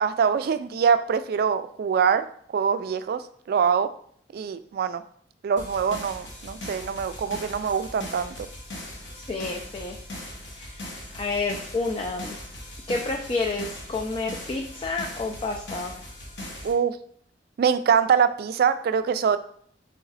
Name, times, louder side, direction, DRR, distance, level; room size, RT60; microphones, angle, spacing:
voice 1, 0.0-2.3 2.5-3.2 3.5-3.9 4.3-5.0 5.4-8.5 16.6-17.0 17.6-19.4, right 7 dB, 55° right, 12 dB, 0.3 m, -24 dB
sound 1, 5.6-16.7, left 1 dB, 85° left, 1.2 m, -39 dB
voice 2, 9.3-10.0 10.5-10.9 11.1-12.4 12.9-15.9, left 3 dB, 30° left, 1 dB, 0.4 m, -29 dB
3.9 x 3.3 x 4.0 m, 0.62 s
head